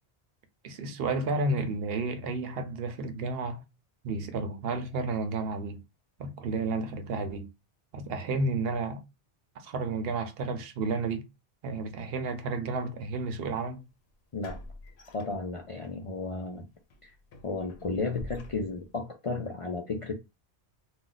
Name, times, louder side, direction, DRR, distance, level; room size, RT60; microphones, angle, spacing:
voice 1, 0.6-3.6 4.0-5.8 6.2-7.5 7.9-9.0 9.6-11.2 11.6-13.9, right 3 dB, 70° right, 0.8 m, -31 dB
sound 1, 13.3-13.5 14.4-15.9 16.3-16.5 16.9-19.0, left 1 dB, 80° left, 0.9 m, -47 dB
voice 2, 15.1-16.7 17.0-17.1 17.4-20.1, left 3 dB, 50° left, 0.4 m, -33 dB
2.5 x 2.1 x 3.8 m
omnidirectional pair, 1.1 m